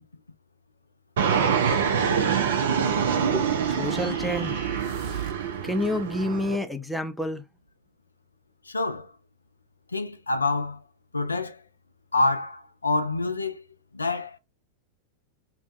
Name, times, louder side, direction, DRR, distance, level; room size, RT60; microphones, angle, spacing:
Fixed-wing aircraft airplane, 1.2-6.6, right 7 dB, 60° right, 0.5 m, -25 dB
voice 1, 3.3-4.6 5.6-7.4, left 1 dB, ahead, 0.4 m, -29 dB
sound 1, 3.9-5.5, right 7 dB, 45° right, 0.9 m, -37 dB
voice 2, 8.7-9.1 9.9-10.8 11.1-11.6 12.1-13.6 13.9-14.4, left 3 dB, 80° left, 0.4 m, -27 dB
2.6 x 2.2 x 2.5 m
figure-of-eight pair, 90°, 0 cm